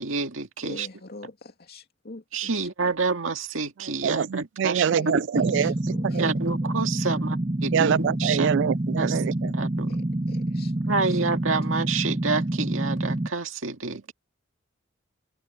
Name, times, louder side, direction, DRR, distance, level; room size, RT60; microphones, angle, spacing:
voice 1, 0.0-0.9 2.3-5.3 6.2-8.5 9.0-9.2 9.5-9.9 10.9-14.1, right 4 dB, 85° right, 2.0 m, -28 dB
voice 2, 0.6-2.7 4.9-6.2 7.1-7.2 9.9-10.7, left 2 dB, 55° left, 2.5 m, -44 dB
voice 3, 4.0-5.7 6.0-6.3 7.7-9.5, right 7 dB, 65° right, 0.3 m, -25 dB
sound 1, 5.3-13.3, right 1 dB, 25° right, 0.7 m, -27 dB
open air
head